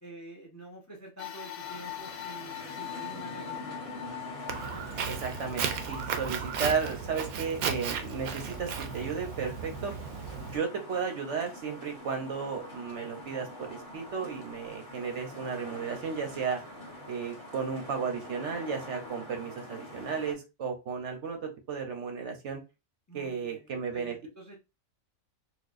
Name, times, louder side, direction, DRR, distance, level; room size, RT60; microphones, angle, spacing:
voice 1, 0.0-3.9 23.1-24.6, right 1 dB, 20° left, 0 dB, 0.6 m, -48 dB
sound 1, 1.2-9.8 10.4-10.5 11.6-11.7, left 13 dB, 75° left, 1.0 m, -44 dB
sound 2, 1.6-20.3, left 1 dB, 55° left, 1.5 m, -45 dB
Walk footsteps, 4.5-10.6, right 7 dB, 85° right, 1.0 m, -35 dB
voice 2, 5.1-9.9 10.5-16.6 17.1-22.6 23.1-24.1, right 6 dB, 60° right, 4 dB, 0.9 m, -34 dB
4.2 x 2.3 x 2.5 m, 0.26 s
omnidirectional pair, 1.5 m